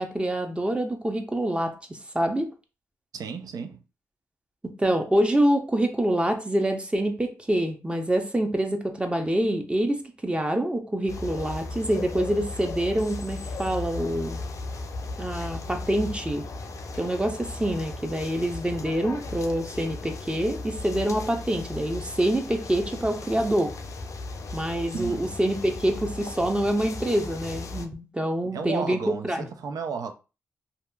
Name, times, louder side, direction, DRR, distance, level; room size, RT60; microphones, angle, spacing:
voice 1, 0.0-2.5 4.8-14.4 15.2-16.4 16.9-23.8 24.5-29.5, right 1 dB, 15° right, 0.6 m, -26 dB
voice 2, 3.1-3.8 24.9-25.3 28.5-30.1, right 5 dB, 75° right, 0.4 m, -33 dB
sound 1, 11.1-27.9, left 3 dB, 55° left, 0.4 m, -36 dB
2.7 x 2.4 x 2.2 m
supercardioid pair, 50°, 6 cm